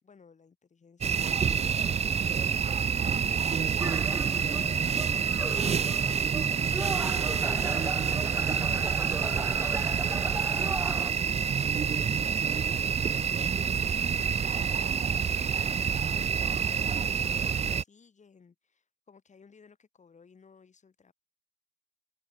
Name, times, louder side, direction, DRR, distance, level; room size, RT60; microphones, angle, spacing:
voice 1, 0.0-6.3 6.7-14.2 15.0-21.1, left 5 dB, 35° left, 4.2 m, -58 dB
sound 1, 1.0-17.8, right 7 dB, 35° right, 0.5 m, -28 dB
sound 2, 3.8-11.1, right 2 dB, 15° right, 1.0 m, -36 dB
sound 3, 8.4-12.7, right 15 dB, 85° right, 5.0 m, -52 dB
cardioid pair, 90°, 20 cm